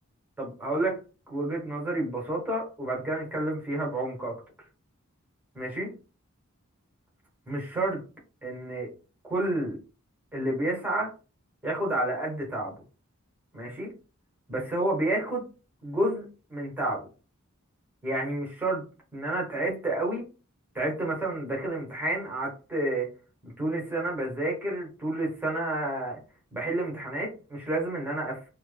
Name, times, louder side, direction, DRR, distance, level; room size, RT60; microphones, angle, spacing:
voice 1, 0.4-1.0 1.3-4.4 5.5-5.9 7.5-8.0 8.4-8.9 9.3-9.8 10.3-11.1 11.6-12.8 13.5-13.9 14.5-15.4 15.8-16.2 16.5-17.1 18.0-18.8 19.1-20.2 20.7-23.1 23.4-26.2 26.5-28.4, right 1 dB, 10° right, -2 dB, 1.1 m, -30 dB
2.9 x 2.1 x 3.2 m, 0.33 s
head